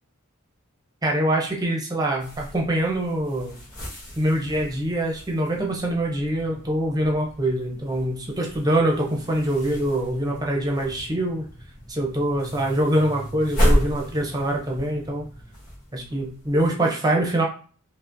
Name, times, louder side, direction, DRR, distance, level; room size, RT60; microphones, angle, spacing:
voice 1, 1.0-3.6 4.2-11.5 11.9-15.3 15.9-17.4, right 1 dB, 15° right, 0 dB, 0.6 m, -24 dB
sound 1, 2.2-16.7, equal, 40° left, 1.4 m, -32 dB
4.7 x 2.1 x 2.6 m, 0.41 s
head